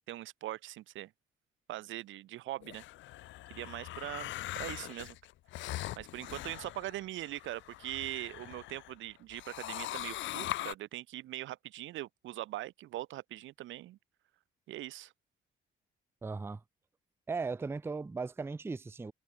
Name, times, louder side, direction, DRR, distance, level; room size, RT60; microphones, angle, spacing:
voice 1, 0.1-1.1 1.7-2.8 3.5-5.2 6.0-14.0 14.7-15.1, right 15 dB, 80° right, 0.7 m, -41 dB
sound 1, 2.6-8.9 9.3-10.7, left 16 dB, 70° left, 0.4 m, -41 dB
voice 2, 16.2-16.6 17.3-19.1, right 4 dB, 10° right, 0.4 m, -37 dB
cardioid pair, 90°, 20 cm